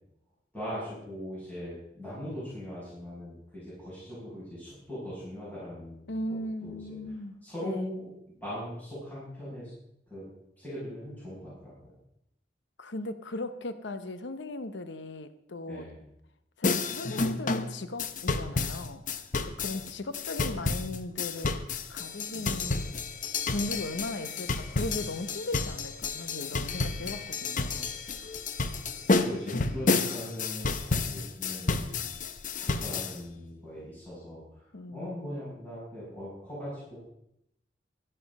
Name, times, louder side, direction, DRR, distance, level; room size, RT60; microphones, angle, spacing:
voice 1, 0.5-6.1 6.6-7.1 7.4-9.7 10.1-10.3 10.6-11.9 15.7-16.0 19.7-19.8 22.3-22.6 29.1-32.1 32.6-37.0, equal, 10° left, -10 dB, 6.4 m, -40 dB
voice 2, 6.1-7.9 12.8-15.9 16.6-19.0 19.4-21.5 21.9-23.1 23.5-27.9 34.7-35.2, left 2 dB, 85° left, 11 dB, 0.8 m, -37 dB
sound 1, 16.6-33.2, left 3 dB, 45° left, 0.8 m, -30 dB
12.5 x 12.0 x 5.3 m, 0.77 s
head